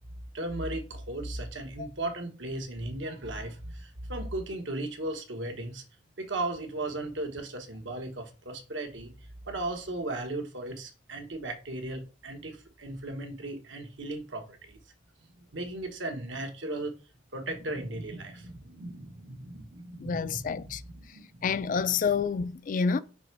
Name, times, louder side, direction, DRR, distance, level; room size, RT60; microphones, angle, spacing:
voice 1, 0.3-5.8 6.2-9.1 9.4-14.8 15.4-16.9 17.3-21.6, right 2 dB, 75° right, 1.3 m, -36 dB
voice 2, 20.0-20.8 21.4-23.0, left 5 dB, 45° left, 0.3 m, -28 dB
6.0 x 3.4 x 4.6 m
head